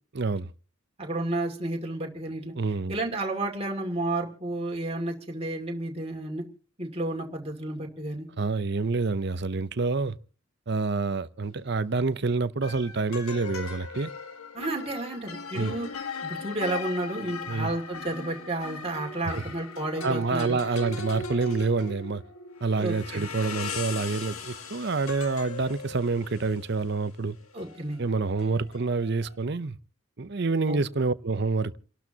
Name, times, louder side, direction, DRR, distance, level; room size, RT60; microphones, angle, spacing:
voice 1, 0.1-0.5 2.6-3.0 8.4-10.2 10.7-14.1 15.5-15.7 17.5-17.7 20.0-22.2 22.6-27.4 28.0-29.8 30.2-31.8, right 3 dB, 50° right, 0.7 m, -27 dB
voice 2, 1.0-2.5 2.9-6.4 6.8-8.3 14.5-15.9 16.2-20.6 22.8-23.3 27.5-28.0 30.7-30.8, right 2 dB, 25° right, 2.4 m, -31 dB
sound 1, 11.5-11.7 12.6-29.4, left 3 dB, 85° left, 1.7 m, -39 dB
29.5 x 12.5 x 2.9 m
head